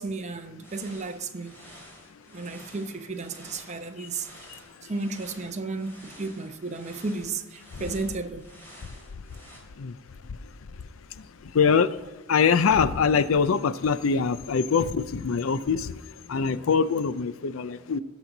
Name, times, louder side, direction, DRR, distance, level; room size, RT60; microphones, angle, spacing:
voice 1, 0.0-1.6 2.3-4.3 4.9-8.4, right 3 dB, 35° right, 0.8 m, -33 dB
sound 1, 0.6-9.6, equal, 10° left, 3.6 m, -50 dB
voice 2, 11.5-11.9 12.3-15.9 16.3-18.0, left 6 dB, 85° left, 0.5 m, -23 dB
17.5 x 6.2 x 4.0 m
head